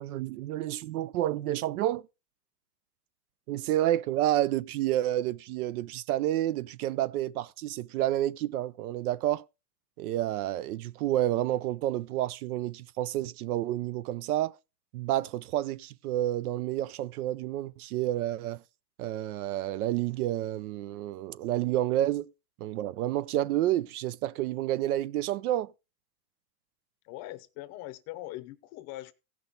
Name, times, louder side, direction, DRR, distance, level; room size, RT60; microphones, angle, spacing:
voice 1, 0.0-2.0 3.5-9.4 10.0-14.6 14.9-18.6 19.0-22.3 22.6-25.7, right 13 dB, 65° right, 0.6 m, -29 dB
voice 2, 27.0-29.1, left 16 dB, 35° left, 0.7 m, -41 dB
16.0 x 6.2 x 3.9 m
supercardioid pair, 145°, 49 cm